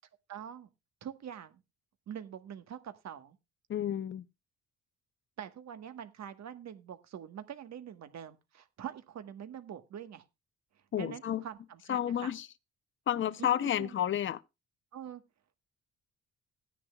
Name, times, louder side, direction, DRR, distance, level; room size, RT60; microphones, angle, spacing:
voice 1, 0.3-0.7 1.0-1.6 2.1-3.4 5.4-10.2 11.0-12.3 13.4-13.9 14.9-15.2, right 9 dB, 65° right, 1.4 m, -44 dB
voice 2, 3.7-4.2 10.9-11.4 11.9-12.5 13.1-14.4, left 10 dB, 40° left, 0.7 m, -31 dB
15.5 x 10.0 x 2.3 m
cardioid pair, 90°, 30 cm